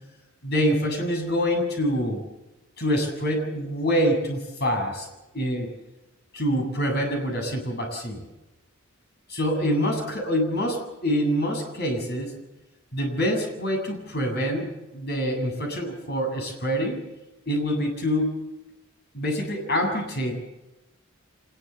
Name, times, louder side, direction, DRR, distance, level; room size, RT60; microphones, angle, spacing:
voice 1, 0.4-2.2 2.8-5.1 5.3-5.7 6.3-8.2 9.3-12.3 12.9-17.0 17.5-18.4 19.1-20.4, equal, 50° left, 3 dB, 7.6 m, -26 dB
25.5 x 21.5 x 7.1 m, 0.99 s
head